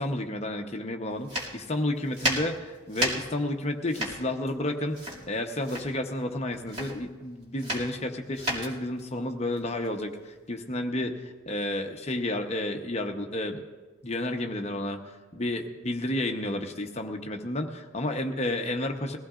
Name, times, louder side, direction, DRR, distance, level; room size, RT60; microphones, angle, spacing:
voice 1, 0.0-5.0 5.3-13.6 14.0-15.0 15.3-19.2, left 1 dB, 30° left, 4 dB, 0.9 m, -31 dB
sound 1, 1.2-10.5, equal, 35° right, 2.4 m, -34 dB
21.5 x 16.0 x 2.5 m, 1.3 s
head